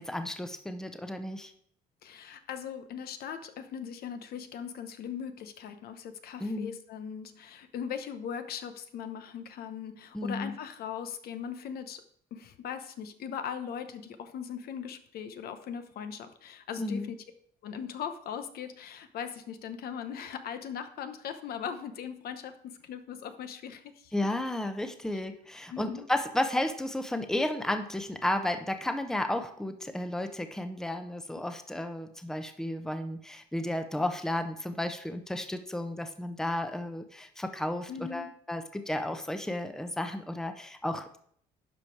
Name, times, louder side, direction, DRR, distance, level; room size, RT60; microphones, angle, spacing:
voice 1, 0.0-1.5 6.4-6.7 10.1-10.5 16.8-17.1 24.1-41.2, left 1 dB, 5° left, 8 dB, 0.8 m, -33 dB
voice 2, 2.0-12.0 12.3-17.2 17.6-24.1 25.7-26.1 37.9-38.3, left 7 dB, 65° left, 9 dB, 1.0 m, -39 dB
11.0 x 5.1 x 4.6 m, 0.63 s
cardioid pair, 110°, 17 cm